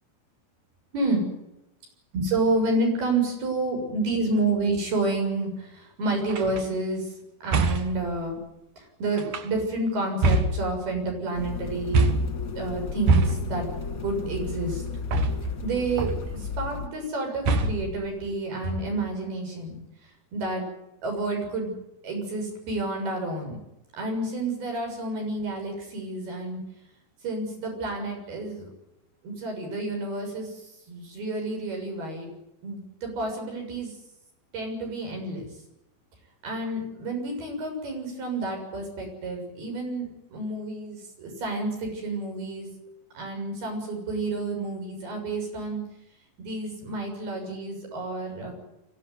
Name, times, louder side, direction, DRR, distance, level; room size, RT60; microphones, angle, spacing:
voice 1, 0.9-1.3 2.1-7.1 7.4-8.4 8.8-12.1 12.6-13.7 14.0-14.8 15.6-19.8 20.3-20.7 21.0-21.7 22.0-23.6 24.0-26.6 27.2-28.7 29.2-32.3 32.6-33.9 34.5-35.5 36.4-42.7 43.2-45.8 46.4-48.5, right 2 dB, 90° right, 3 dB, 8.7 m, -29 dB
sound 1, 6.3-6.6 7.5-8.0 9.2-9.7 10.2-11.1 11.9-12.5 13.1-13.7 15.1-15.7 16.0-16.4 17.5-18.0 18.6-19.2, right 3 dB, 60° right, 2.7 m, -24 dB
sound 2, 11.3-16.9, left 5 dB, 40° left, 1.2 m, -34 dB
24.0 x 16.5 x 9.6 m, 0.89 s
omnidirectional pair, 4.3 m